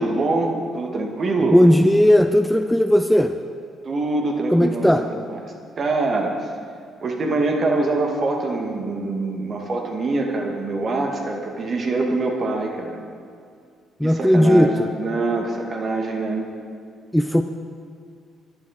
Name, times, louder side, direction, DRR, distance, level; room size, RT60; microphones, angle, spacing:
voice 1, 0.0-1.6 3.8-4.9 5.3-6.4 7.0-13.0 14.0-16.5, right 2 dB, 45° right, 2 dB, 2.4 m, -24 dB
voice 2, 1.5-3.3 4.5-5.0 14.0-14.9 17.1-17.4, equal, ahead, 7 dB, 0.7 m, -16 dB
21.5 x 11.5 x 4.5 m, 2.3 s
figure-of-eight pair, 45°, 0 cm